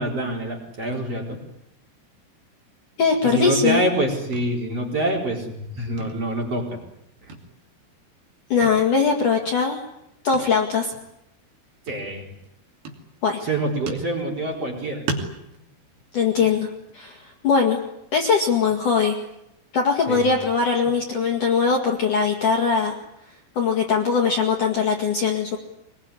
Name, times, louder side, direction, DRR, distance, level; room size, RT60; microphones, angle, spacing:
voice 1, 0.0-1.4 3.2-6.8 11.9-12.2 13.4-15.1 20.1-20.3, right 1 dB, 30° right, 0 dB, 4.8 m, -26 dB
voice 2, 3.0-3.8 8.5-9.8 10.2-10.9 13.2-13.4 16.1-16.7 16.9-17.8 18.1-19.2 19.7-22.9 23.6-25.6, left 5 dB, 50° left, 2 dB, 2.8 m, -21 dB
sound 1, 4.3-4.8 5.0-5.7 6.0-7.0 7.3-8.0 8.6-8.9 9.2-9.3 10.3-10.6 10.9-11.1 11.9-12.5 12.9-13.5 13.9-14.7 15.1-17.1 17.5-17.8 18.1-18.2 18.7-19.4 19.8-22.3, right 3 dB, 55° right, 4.4 m, -38 dB
24.5 x 21.5 x 9.9 m, 0.83 s
omnidirectional pair, 5.9 m